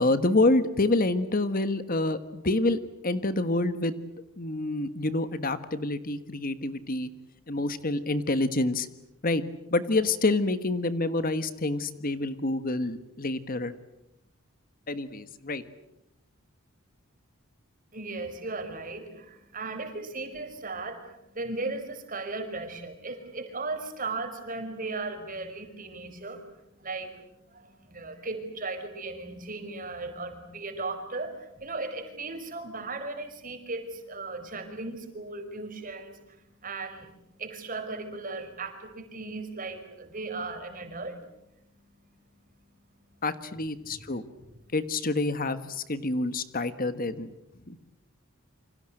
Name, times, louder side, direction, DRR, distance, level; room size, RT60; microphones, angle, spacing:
voice 1, 0.0-3.9 4.4-7.1 7.5-8.9 9.2-9.4 9.7-13.7 14.9-15.6 43.2-44.2 44.7-47.3 47.7-47.8, left 2 dB, 40° left, 12 dB, 1.3 m, -27 dB
voice 2, 17.9-43.2 43.9-44.1 44.5-44.7, right 3 dB, 40° right, 7 dB, 5.1 m, -37 dB
29.0 x 26.0 x 7.8 m, 0.86 s
head